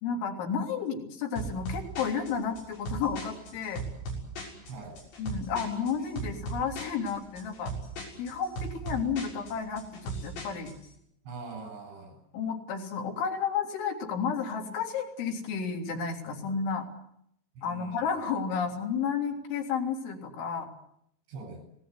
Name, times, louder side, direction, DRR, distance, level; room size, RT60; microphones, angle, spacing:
voice 1, 0.0-3.8 5.2-7.7 8.2-10.7 12.3-16.9 17.6-20.7, left 6 dB, 85° left, 2 dB, 5.8 m, -32 dB
sound 1, 1.4-10.9, right 2 dB, 70° left, 8.6 m, -38 dB
voice 2, 11.3-12.2 17.6-18.0 21.3-21.6, right 4 dB, 70° right, 7 dB, 10.5 m, -42 dB
26.5 x 19.0 x 9.9 m, 0.76 s
omnidirectional pair, 5.3 m